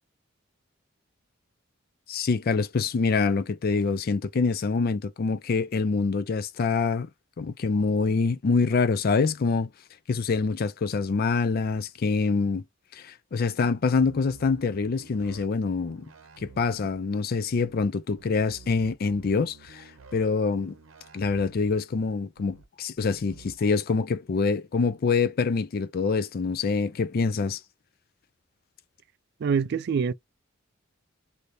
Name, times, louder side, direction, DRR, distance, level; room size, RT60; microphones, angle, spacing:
voice 1, 2.1-7.1 7.4-9.7 10.1-12.6 12.9-16.1 16.4-20.8 21.1-27.6, left 4 dB, 45° left, 0.4 m, -25 dB
sound 1, 14.0-15.5 15.8-17.0 17.6-17.9 18.2-20.3 20.6-21.8 22.4-22.7 23.0-23.6, right 4 dB, 80° right, 0.8 m, -51 dB
voice 2, 29.4-30.1, right 6 dB, 50° right, 0.3 m, -25 dB
3.1 x 2.7 x 2.6 m
head